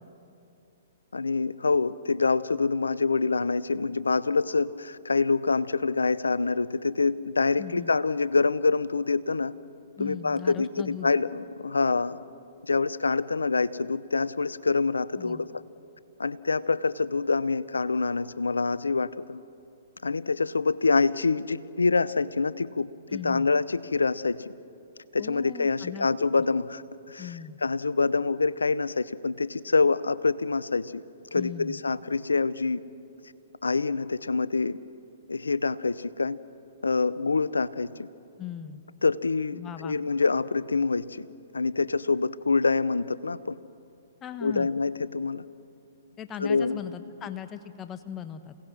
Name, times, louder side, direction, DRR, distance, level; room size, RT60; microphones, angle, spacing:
voice 1, 1.1-9.5 10.0-12.2 12.7-15.5 16.2-19.4 20.0-24.4 25.1-26.8 27.1-27.3 27.6-31.0 31.3-32.8 33.6-34.8 35.3-36.4 36.8-38.1 39.0-41.3 41.5-43.6 44.4-45.4 46.4-46.8, left 4 dB, 85° left, 18 dB, 0.7 m, -26 dB
voice 2, 7.6-7.9 10.0-11.1 15.2-15.4 23.1-23.5 25.2-26.1 26.4-26.5 27.2-27.6 31.3-31.8 38.4-38.8 39.5-40.0 44.2-44.7 46.2-48.6, left 9 dB, 20° left, 10 dB, 1.2 m, -39 dB
28.0 x 18.0 x 6.2 m, 2.7 s
hypercardioid pair, 125°, 0 cm